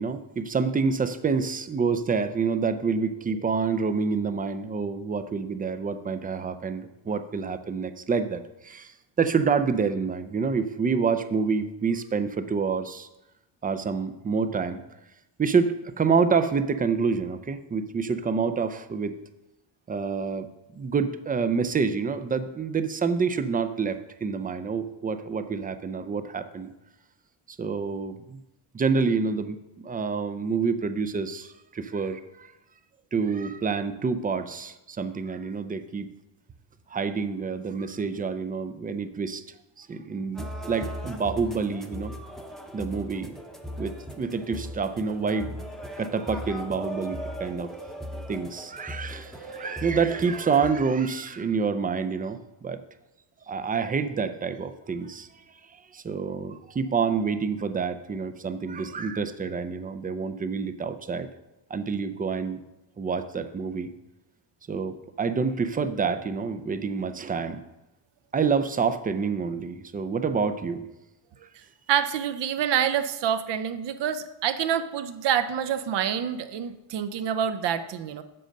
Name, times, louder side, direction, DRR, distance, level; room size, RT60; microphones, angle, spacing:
voice 1, 0.0-13.1 13.6-14.8 15.4-19.2 19.9-26.7 27.5-28.4 28.7-32.5 33.1-36.1 36.9-39.4 39.8-42.1 42.7-43.3 43.8-45.6 46.0-47.7 48.3-52.8 53.5-61.3 61.7-62.6 63.0-63.9 64.7-67.6 68.3-70.9, right 5 dB, 20° right, 10 dB, 0.4 m, -27 dB
sound 1, 40.3-50.7, equal, ahead, 0.8 m, -38 dB
voice 2, 71.9-78.2, right 9 dB, 60° right, 11 dB, 0.7 m, -27 dB
7.7 x 5.1 x 6.5 m, 0.98 s
cardioid pair, 120°, 48 cm